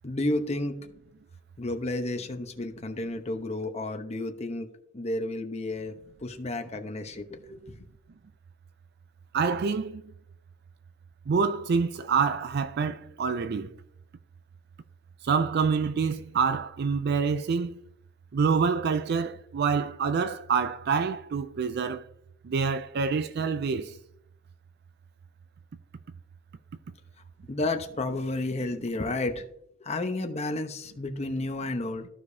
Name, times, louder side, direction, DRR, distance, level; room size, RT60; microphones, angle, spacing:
voice 1, 0.0-0.8 1.6-4.7 4.9-5.9 6.2-7.8 27.5-29.5 29.8-32.1, left 2 dB, 35° left, 0.9 m, -31 dB
voice 2, 9.3-10.0 11.3-13.7 15.2-17.8 18.3-22.0 22.4-24.0, right 5 dB, 55° right, 0.4 m, -26 dB
14.5 x 4.9 x 2.7 m
head